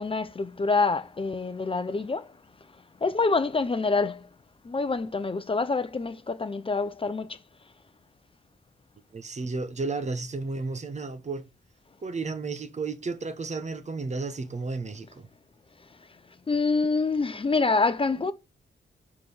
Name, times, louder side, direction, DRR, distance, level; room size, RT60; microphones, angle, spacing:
voice 1, 0.0-2.3 3.0-4.2 4.6-7.4 16.5-18.3, left 4 dB, 30° left, 0.7 m, -26 dB
voice 2, 9.1-11.5 12.0-15.3, right 3 dB, 40° right, 1.0 m, -33 dB
5.0 x 4.8 x 5.4 m
cardioid pair, 85°, 19 cm